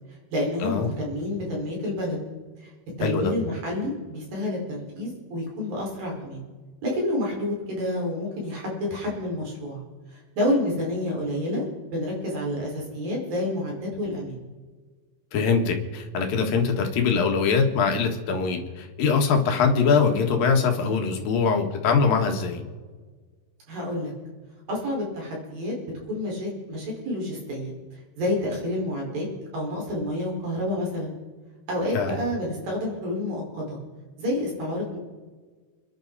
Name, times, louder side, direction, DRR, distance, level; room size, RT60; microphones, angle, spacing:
voice 1, 0.3-2.2 2.6-2.7 3.0-6.4 6.8-9.8 10.1-11.7 11.9-14.4 23.7-24.1 24.7-25.7 26.1-29.3 29.5-31.2 31.7-33.8 34.2-35.0, left 1 dB, 55° right, -3 dB, 6.5 m, -29 dB
voice 2, 3.0-3.3 15.3-22.6 31.9-32.1, left 5 dB, 60° left, 3 dB, 3.1 m, -22 dB
29.5 x 11.0 x 4.1 m, 1.4 s
omnidirectional pair, 4.9 m